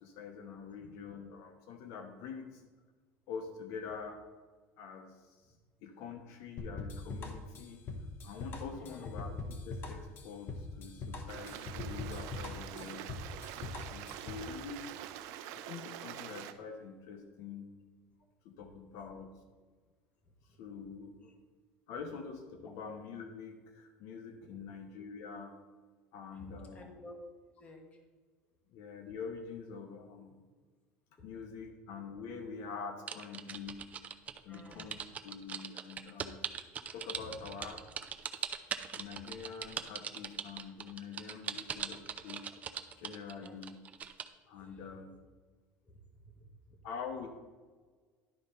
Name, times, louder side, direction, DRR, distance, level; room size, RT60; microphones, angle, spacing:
voice 1, 0.0-2.6 3.3-4.2 4.8-5.1 5.8-7.8 8.2-9.3 9.6-13.2 13.8-15.0 15.5-17.7 18.4-19.3 20.6-21.3 21.9-25.5 26.1-26.8 28.7-30.3 31.2-33.8 34.4-36.4 36.9-37.8 38.9-42.4 43.0-43.8 44.5-45.1 46.8-47.3, left 5 dB, 65° left, 5 dB, 1.0 m, -45 dB
sound 1, 6.6-14.5, left 3 dB, 45° left, 1.1 m, -42 dB
voice 2, 8.7-9.1 18.5-18.7 18.9-19.1 20.2-20.6 21.2-21.3 22.6-22.7 24.4-24.8 26.3-27.2 27.5-28.0 31.2-31.3 34.5-35.0 37.1-37.5 43.4-43.6 44.5-45.2 45.8-46.8, left 1 dB, 25° left, 3 dB, 1.5 m, -54 dB
Stream, 11.3-16.5, right 11 dB, 70° right, 0.6 m, -45 dB
sound 2, 33.1-44.3, right 7 dB, 30° right, 0.5 m, -40 dB
11.0 x 4.3 x 5.5 m, 1.4 s
cardioid pair, 130°, 5 cm